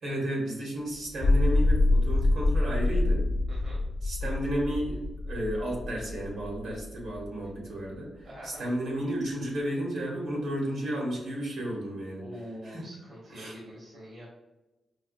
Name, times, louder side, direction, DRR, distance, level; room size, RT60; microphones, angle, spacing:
voice 1, 0.0-3.2 4.0-12.2 12.6-12.9 13.3-13.6, right 1 dB, 85° right, -3 dB, 1.3 m, -33 dB
sound 1, 1.1-7.5, left 2 dB, 60° left, 0.3 m, -26 dB
voice 2, 3.5-3.8 8.2-8.6 12.2-14.3, equal, 60° right, -5 dB, 0.9 m, -44 dB
4.7 x 2.0 x 2.4 m, 1.0 s
cardioid pair, 100°, 0 cm